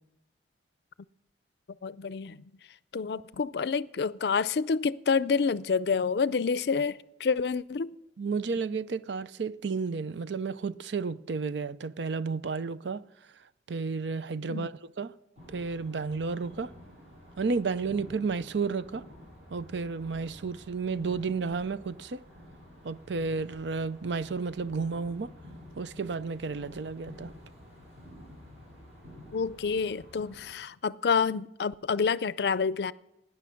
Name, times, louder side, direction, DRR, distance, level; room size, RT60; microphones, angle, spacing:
voice 1, 1.8-2.4 2.9-7.9 14.5-14.7 29.3-32.9, left 5 dB, 65° left, 0.4 m, -28 dB
voice 2, 8.2-13.0 13.7-14.7 15.0-15.1 15.5-16.7 17.4-19.0 19.5-22.2 22.8-25.3 25.8-27.3, right 4 dB, 80° right, 0.5 m, -32 dB
sound 1, 15.4-30.5, left 1 dB, 40° right, 7.1 m, -50 dB
17.0 x 10.5 x 5.8 m
head